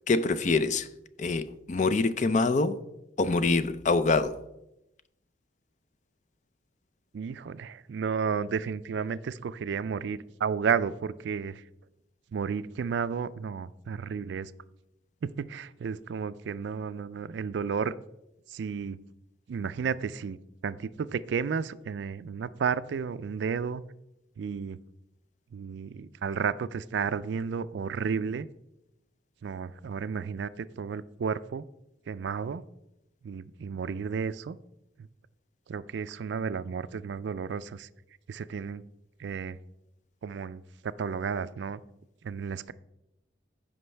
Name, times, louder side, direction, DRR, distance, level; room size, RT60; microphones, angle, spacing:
voice 1, 0.1-0.9 1.2-2.8 3.2-4.4, left 3 dB, 40° left, 0.4 m, -25 dB
voice 2, 7.1-11.6 12.3-14.5 15.2-17.9 18.5-19.0 19.5-20.4 20.6-23.8 24.4-24.8 25.5-28.5 29.4-31.7 32.1-32.6 33.2-34.6 35.7-37.9 38.3-38.8 39.2-39.6 40.2-41.8 42.2-42.7, right 6 dB, 65° right, 0.3 m, -32 dB
15.0 x 5.3 x 3.3 m
head